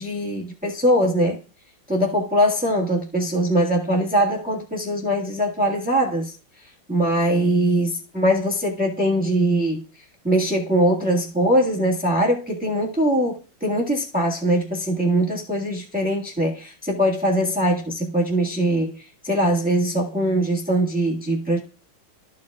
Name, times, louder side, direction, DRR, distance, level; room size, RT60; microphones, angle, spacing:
voice 1, 0.0-1.4 1.9-6.3 6.9-9.8 10.2-21.6, right 1 dB, 5° right, 1.5 m, -22 dB
14.0 x 5.2 x 2.4 m
omnidirectional pair, 2.0 m